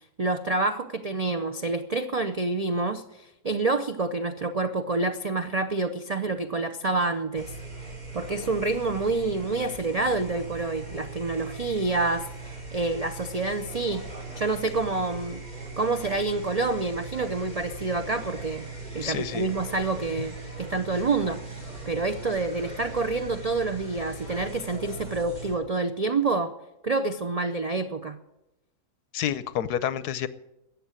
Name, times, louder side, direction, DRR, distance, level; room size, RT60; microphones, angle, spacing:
voice 1, 0.2-7.5 8.1-12.3 12.7-14.1 14.4-15.4 15.8-18.7 18.9-26.5 26.8-28.2, right 3 dB, 60° right, 9 dB, 0.4 m, -27 dB
sound 1, 7.3-25.6, right 3 dB, 25° right, 3.3 m, -40 dB
voice 2, 19.0-19.5 29.1-30.3, left 10 dB, 80° left, 15 dB, 1.3 m, -29 dB
14.0 x 8.8 x 8.9 m, 0.90 s
omnidirectional pair, 1.7 m